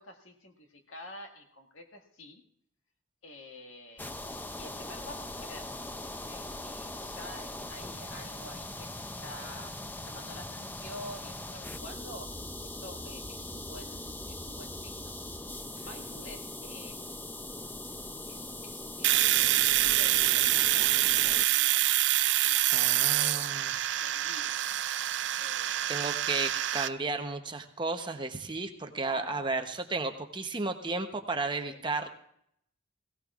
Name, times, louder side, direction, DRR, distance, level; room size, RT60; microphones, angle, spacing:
voice 1, 0.0-2.4 3.2-4.3 4.5-8.9 9.2-15.2 15.5-17.3 18.3-24.6 25.4-25.9 28.9-29.8 31.6-31.8, left 1 dB, 80° left, 3 dB, 1.8 m, -48 dB
sound 1, 4.0-21.5, left 2 dB, 10° left, 0.4 m, -41 dB
Domestic sounds home sounds, 19.0-26.9, right 14 dB, 60° right, 0.4 m, -26 dB
voice 2, 22.7-23.7 25.9-32.1, right 3 dB, 25° right, 5 dB, 0.8 m, -33 dB
17.5 x 17.5 x 2.4 m, 0.71 s
head